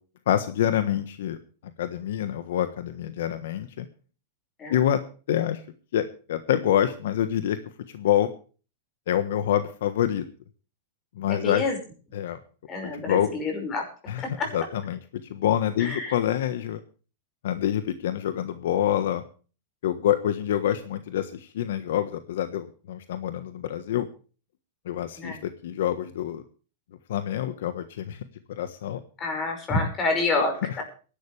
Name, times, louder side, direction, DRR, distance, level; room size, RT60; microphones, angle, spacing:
voice 1, 0.3-1.4 1.8-3.9 4.7-5.0 5.3-5.6 5.9-7.6 7.9-8.3 9.1-10.2 11.2-11.6 12.1-12.4 13.1-13.3 14.1-14.2 14.5-15.0 15.3-16.8 17.4-19.2 19.8-24.1 24.8-26.4 27.1-28.2 28.6-29.0, left 11 dB, 75° left, 10 dB, 1.3 m, -26 dB
voice 2, 11.3-11.8 12.7-13.8 14.2-14.5 15.8-16.2 25.2-25.4 29.2-30.8, left 3 dB, 20° left, 3 dB, 5.5 m, -28 dB
21.5 x 11.5 x 3.4 m, 0.37 s
supercardioid pair, 160°, 0 cm